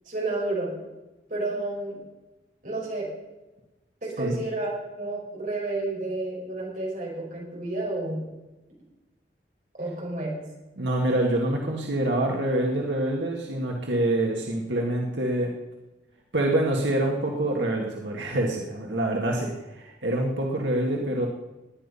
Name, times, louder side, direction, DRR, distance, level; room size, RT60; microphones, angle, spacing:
voice 1, 0.1-0.7 1.3-2.0 2.6-3.1 4.0-8.2 9.8-10.4, right 2 dB, 45° right, -3 dB, 5.7 m, -31 dB
voice 2, 10.8-15.5 16.3-21.3, right 1 dB, 85° right, 0 dB, 2.0 m, -26 dB
19.0 x 10.0 x 5.6 m, 1.1 s
head